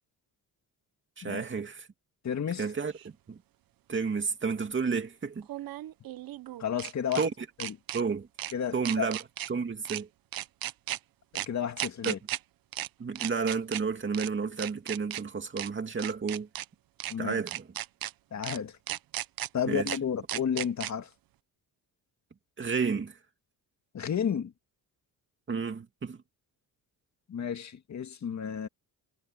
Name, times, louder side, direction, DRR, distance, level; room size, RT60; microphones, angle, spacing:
voice 1, 1.2-1.9 2.6-3.4 3.9-5.5 7.2-7.3 7.9-8.3 8.7-9.2 9.5-10.1 12.0-12.1 13.0-16.5 17.2-17.6 19.7-19.9 22.6-23.2 25.5-26.2, right 5 dB, 30° right, 2.5 m, -31 dB
voice 2, 2.2-2.6 6.6-7.3 7.6-7.8 8.5-9.1 11.3-12.2 17.1-17.4 18.3-18.8 19.5-21.1 23.9-24.5 27.3-28.7, left 8 dB, 45° left, 2.1 m, -32 dB
sound 1, 3.0-3.1 5.4-7.3 7.6-8.0 8.4-8.5 8.9-9.5 9.9-10.0 10.3-11.0 11.4-11.5 11.8-12.4 12.7-12.9 13.2-13.8 14.1-14.3 14.6-15.2 15.6-15.7 16.0-16.7 17.0-17.1 17.5-18.1 18.4-18.6 18.9-19.5 19.9-20.0 20.3-20.9, right 14 dB, 65° right, 0.7 m, -35 dB
cardioid pair, 135°, 38 cm